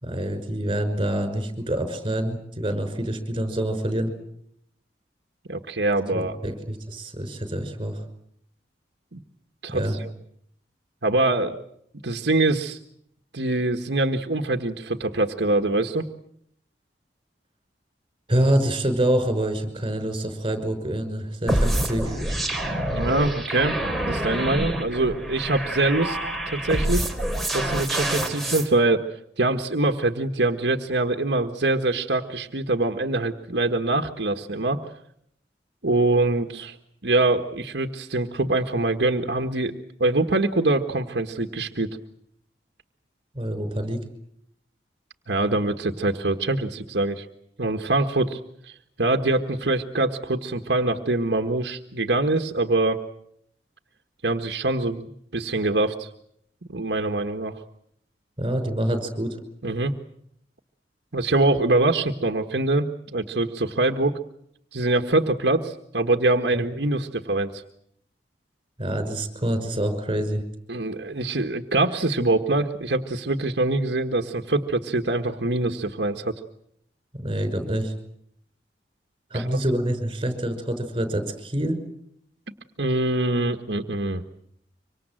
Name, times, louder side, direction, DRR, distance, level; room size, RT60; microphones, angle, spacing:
voice 1, 0.0-4.1 6.1-8.0 9.7-10.0 18.3-22.2 43.3-44.0 58.4-59.4 66.5-66.6 68.8-70.4 77.1-77.9 79.3-81.8, right 1 dB, 30° right, 8 dB, 5.7 m, -26 dB
voice 2, 5.5-6.4 9.1-9.2 9.6-10.1 11.0-11.6 12.0-12.8 13.3-16.0 22.9-23.8 24.0-26.2 26.5-27.1 27.5-34.8 35.8-36.8 37.0-41.9 45.3-47.2 47.6-53.0 54.2-56.1 56.7-57.6 59.6-59.9 61.1-64.2 64.7-67.6 70.7-76.3 79.3-79.4 82.8-84.2, right 2 dB, 75° right, 5 dB, 1.5 m, -24 dB
sound 1, 21.5-28.7, right 1 dB, ahead, 3.3 m, -27 dB
25.5 x 25.5 x 7.7 m, 0.72 s
head